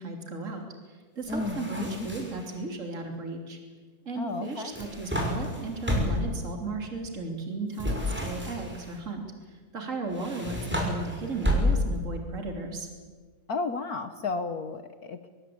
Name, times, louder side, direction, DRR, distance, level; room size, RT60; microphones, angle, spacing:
voice 1, 0.0-3.6 4.1-12.9, right 3 dB, 40° right, 3 dB, 3.6 m, -35 dB
sound 1, 1.2-2.5 4.5-6.4 7.7-8.9 10.1-12.1, left 1 dB, 5° right, 5.8 m, -30 dB
voice 2, 1.3-2.1 4.2-4.7 13.5-15.3, left 3 dB, 55° left, 9 dB, 1.5 m, -33 dB
24.0 x 22.0 x 8.7 m, 1.5 s
omnidirectional pair, 2.1 m